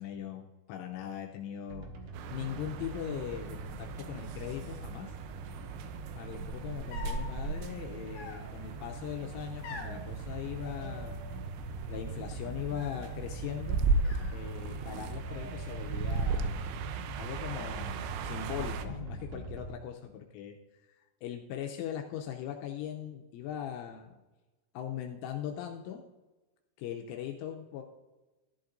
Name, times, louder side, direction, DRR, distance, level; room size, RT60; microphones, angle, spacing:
voice 1, 0.0-1.9 2.3-5.1 6.1-11.3 11.9-13.8 14.3-16.9 17.2-20.0 20.3-20.5 20.9-24.2 24.7-26.1 26.8-27.8, left 10 dB, 80° left, 3 dB, 3.1 m, -40 dB
sound 1, 1.7-19.7, right 3 dB, 65° right, 2.6 m, -43 dB
sound 2, 2.1-18.9, right 4 dB, 85° right, 2.7 m, -37 dB
sound 3, 6.9-7.3 8.1-8.8 9.6-10.0 10.6-11.5 11.8-12.3 12.8-13.3 14.0-14.9 15.2-16.0, left 4 dB, 55° left, 3.4 m, -47 dB
14.0 x 11.5 x 2.6 m, 1.1 s
omnidirectional pair, 5.8 m